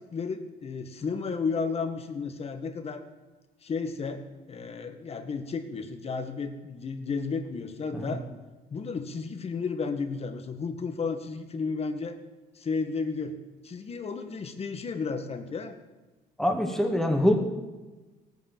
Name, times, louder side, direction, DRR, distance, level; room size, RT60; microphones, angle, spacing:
voice 1, 0.1-3.0 3.6-8.3 8.7-12.2 12.6-13.4 13.6-15.8, left 4 dB, 35° left, 7 dB, 1.8 m, -33 dB
voice 2, 16.4-17.4, left 1 dB, ahead, 3 dB, 2.2 m, -24 dB
17.5 x 9.6 x 7.5 m, 1.2 s
cardioid pair, 110°, 17 cm